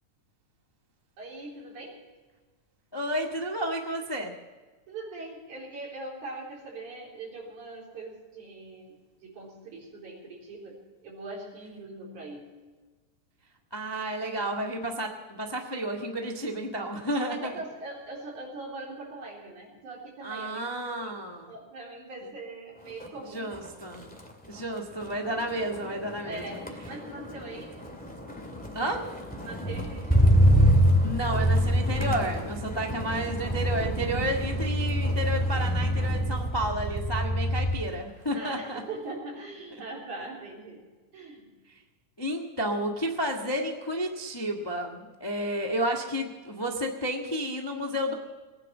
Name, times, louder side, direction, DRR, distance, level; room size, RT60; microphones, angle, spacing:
voice 1, 1.2-2.0 4.9-9.0 9.2-12.5 17.3-20.6 21.0-21.2 21.5-23.5 26.2-27.8 29.4-30.5 38.3-40.8 41.1-41.5, right 2 dB, 75° right, -2 dB, 5.4 m, -41 dB
voice 2, 2.9-4.3 13.7-17.5 20.2-21.5 23.3-24.0 24.5-26.6 28.7-29.0 31.0-38.8 42.2-48.1, right 1 dB, 30° left, 1 dB, 0.4 m, -31 dB
Motor vehicle (road), 22.9-23.2 23.5-38.0 38.4-38.8, equal, 5° left, 1.7 m, -26 dB
19.5 x 9.8 x 7.2 m, 1.3 s
omnidirectional pair, 3.5 m